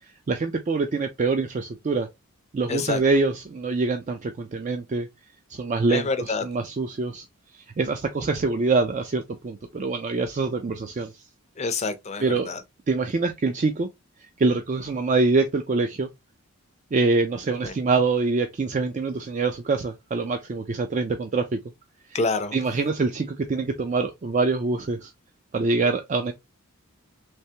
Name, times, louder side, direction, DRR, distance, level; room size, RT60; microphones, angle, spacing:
voice 1, 0.3-2.1 2.5-5.1 5.5-7.2 7.8-11.1 12.2-12.5 12.9-13.9 14.4-16.1 16.9-21.6 22.5-25.1 25.5-26.3, right 3 dB, 35° right, 0.3 m, -25 dB
voice 2, 2.7-3.0 5.9-6.4 11.6-12.6 17.6-17.7 22.1-22.5, left 3 dB, 30° left, 0.5 m, -27 dB
3.3 x 3.2 x 2.8 m
head